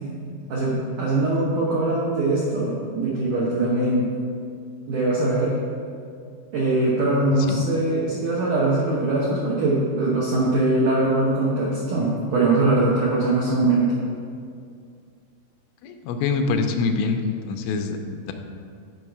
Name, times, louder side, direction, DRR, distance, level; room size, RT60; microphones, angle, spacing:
voice 1, 0.0-4.1 4.9-5.5 6.5-13.9, right 2 dB, 85° right, -5 dB, 1.7 m, -22 dB
voice 2, 15.8-18.3, left 4 dB, 85° left, 5 dB, 3.1 m, -25 dB
9.8 x 5.5 x 4.7 m, 2.3 s
omnidirectional pair, 5.3 m